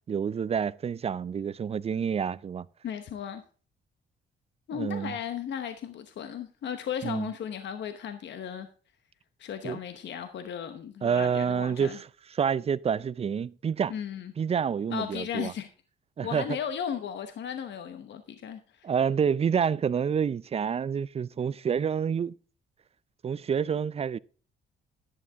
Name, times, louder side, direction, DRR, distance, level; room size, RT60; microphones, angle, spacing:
voice 1, 0.1-2.7 4.7-5.1 7.0-7.3 9.6-9.8 11.0-12.1 12.3-13.9 14.4-15.5 16.2-16.6 18.8-22.3 23.2-24.2, right 7 dB, 30° right, 0.4 m, -28 dB
voice 2, 2.8-3.4 4.7-8.7 9.4-12.0 13.9-14.3 14.9-15.7 16.2-18.9, left 8 dB, 65° left, 1.0 m, -36 dB
11.0 x 9.3 x 3.5 m
cardioid pair, 90°, 20 cm